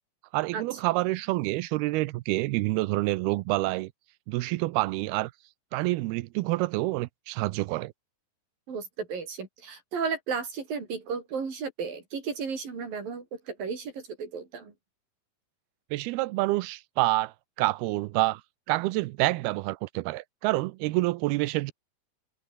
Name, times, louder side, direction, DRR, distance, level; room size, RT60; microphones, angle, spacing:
voice 1, 0.3-3.9 4.3-5.3 5.7-7.9 15.9-17.3 17.6-18.4 18.7-21.7, right 20 dB, 90° right, 2.6 m, -27 dB
voice 2, 8.7-14.7, right 5 dB, 60° right, 6.9 m, -34 dB
omnidirectional pair, 4.5 m